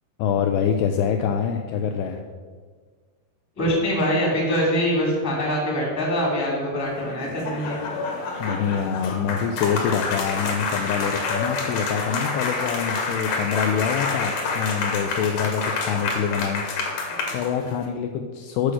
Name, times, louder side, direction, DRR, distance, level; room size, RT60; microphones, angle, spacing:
voice 1, 0.2-2.2 8.4-18.7, left 7 dB, 85° left, 5 dB, 2.4 m, -25 dB
voice 2, 3.5-7.8, equal, 5° left, -3 dB, 1.5 m, -23 dB
sound 1, 6.9-17.9, left 4 dB, 65° left, 2.5 m, -28 dB
8.4 x 6.3 x 6.2 m, 1.5 s
omnidirectional pair, 5.1 m